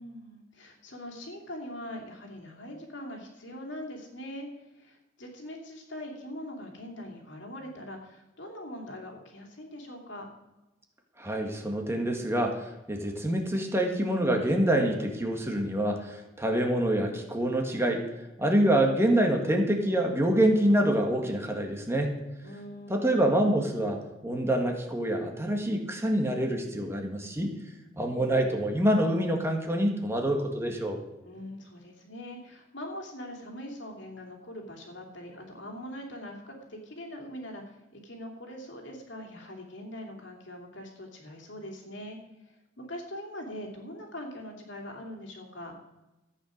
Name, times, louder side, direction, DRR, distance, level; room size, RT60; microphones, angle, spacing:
voice 1, 0.0-10.3 22.4-23.3 31.2-45.7, left 1 dB, 70° left, 2 dB, 2.9 m, -42 dB
voice 2, 11.2-18.1 18.4-22.1 22.9-27.5 28.0-31.0, right 1 dB, 15° right, 3 dB, 1.7 m, -26 dB
14.0 x 8.6 x 6.5 m, 1.0 s
head